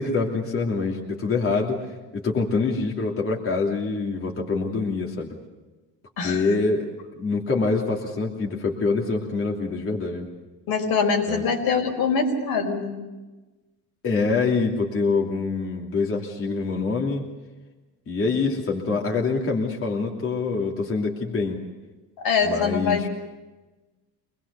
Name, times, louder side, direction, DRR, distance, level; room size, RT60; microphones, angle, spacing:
voice 1, 0.0-5.4 6.2-6.9 7.1-10.3 11.3-11.4 14.0-17.3 18.1-21.6 22.4-23.1, left 4 dB, 35° left, -1 dB, 3.0 m, -25 dB
voice 2, 6.2-6.5 10.7-13.0 22.2-23.1, left 5 dB, 70° left, 2 dB, 5.0 m, -23 dB
25.0 x 20.5 x 7.0 m, 1.2 s
cardioid pair, 125°, 38 cm